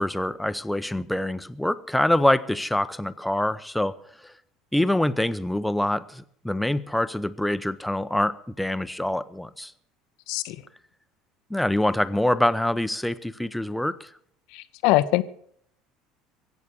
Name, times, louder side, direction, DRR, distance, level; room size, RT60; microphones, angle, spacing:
voice 1, 0.0-4.0 4.2-4.3 4.7-9.7 11.5-14.1, left 1 dB, 5° left, 0.8 m, -25 dB
voice 2, 10.3-10.6 14.5-15.2, left 18 dB, 60° left, 0.7 m, -23 dB
23.0 x 8.3 x 6.3 m
figure-of-eight pair, 65°, 0 cm